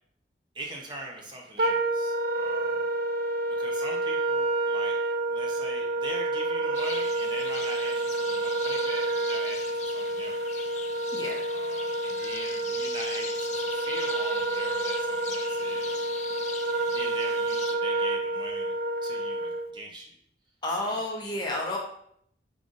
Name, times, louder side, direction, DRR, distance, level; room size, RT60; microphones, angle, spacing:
voice 1, 0.5-2.9 3.6-5.0 5.3-10.7 11.5-16.1 16.9-18.7 19.0-20.2 20.7-21.0, right 1 dB, 25° right, -1 dB, 0.7 m, -41 dB
Wind instrument woodwind instrument, 1.6-19.7, right 2 dB, 55° right, 0.3 m, -29 dB
sound 1, 6.7-17.8, left 7 dB, 40° left, 0.3 m, -41 dB
voice 2, 20.6-21.8, left 1 dB, 25° left, -1 dB, 0.7 m, -30 dB
5.5 x 3.8 x 2.5 m, 0.68 s
head